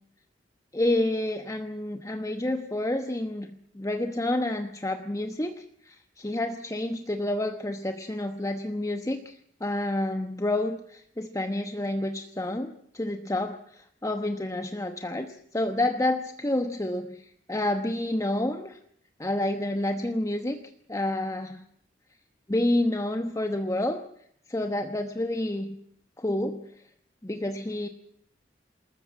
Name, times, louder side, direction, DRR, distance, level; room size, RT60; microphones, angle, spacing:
voice 1, 0.7-18.8 19.2-20.6 20.9-21.6 22.5-24.0 24.5-25.7 26.2-26.7 27.2-27.9, left 1 dB, 15° left, 7 dB, 1.0 m, -29 dB
27.5 x 14.0 x 8.6 m, 0.68 s
head